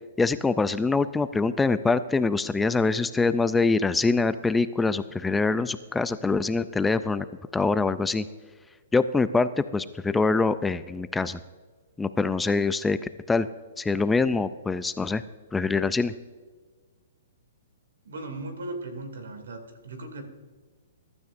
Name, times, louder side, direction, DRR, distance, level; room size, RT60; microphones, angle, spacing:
voice 1, 0.2-7.2 7.5-8.2 8.9-11.4 12.0-13.0 13.3-13.5 13.8-15.2 15.5-16.1, left 3 dB, 5° left, 13 dB, 0.3 m, -24 dB
voice 2, 18.0-20.2, right 2 dB, 85° right, 6 dB, 2.4 m, -37 dB
21.5 x 12.0 x 2.5 m, 1.4 s
hypercardioid pair, 160°, 0 cm